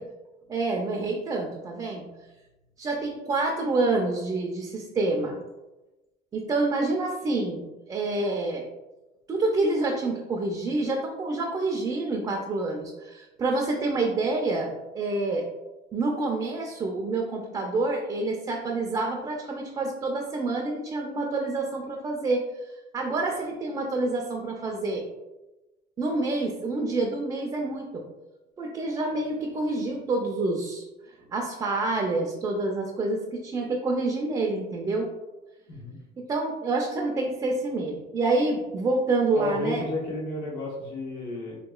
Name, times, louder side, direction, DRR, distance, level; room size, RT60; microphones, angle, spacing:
voice 1, 0.5-2.1 2.8-5.4 6.3-8.6 9.3-15.5 15.9-25.0 26.0-28.0 28.6-35.1 36.2-39.9, right 2 dB, 20° right, 0 dB, 0.3 m, -27 dB
voice 2, 39.3-41.6, left 1 dB, 80° left, -2 dB, 1.0 m, -32 dB
3.5 x 2.8 x 2.2 m, 1.0 s
cardioid pair, 145°, 18 cm